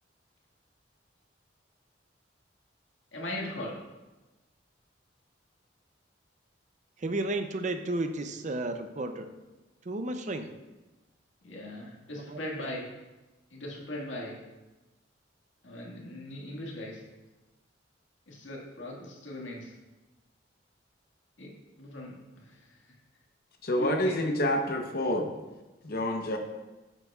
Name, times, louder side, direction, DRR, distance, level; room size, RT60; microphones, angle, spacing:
voice 1, 3.1-3.8 11.4-12.9 13.5-14.4 15.6-17.0 18.3-19.7 21.4-22.8 23.8-24.2, left 1 dB, 90° left, -2 dB, 1.9 m, -39 dB
voice 2, 7.0-9.3 9.8-10.5 12.2-12.7, right 2 dB, 40° right, 7 dB, 0.5 m, -33 dB
voice 3, 23.6-25.3 25.8-26.4, left 1 dB, 55° left, 3 dB, 0.8 m, -28 dB
9.2 x 8.1 x 2.4 m, 1.1 s
head